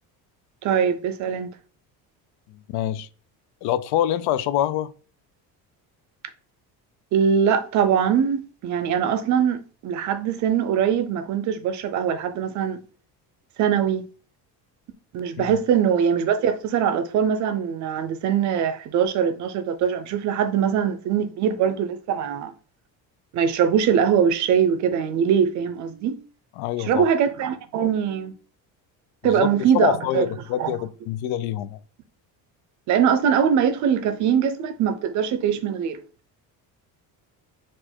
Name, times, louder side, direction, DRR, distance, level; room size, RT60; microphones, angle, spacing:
voice 1, 0.6-1.5 7.1-12.8 13.6-14.1 15.1-22.5 23.3-26.2 26.8-28.3 29.2-30.3 30.6-30.7 32.9-36.0, right 8 dB, 50° right, 0.5 m, -22 dB
voice 2, 2.5-3.1 3.6-4.9 15.4-15.6 26.6-27.1 29.2-31.8, left 12 dB, 80° left, 0.5 m, -26 dB
4.4 x 2.4 x 4.3 m
cardioid pair, 170°, 38 cm